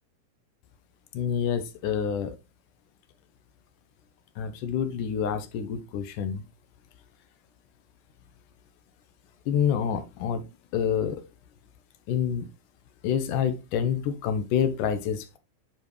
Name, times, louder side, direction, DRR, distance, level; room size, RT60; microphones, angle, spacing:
voice 1, 1.1-2.4 4.4-6.4 9.5-10.4 10.7-11.2 12.1-12.5 13.0-15.4, left 8 dB, 75° left, 2.3 m, -27 dB
9.3 x 5.0 x 3.1 m
omnidirectional pair, 3.9 m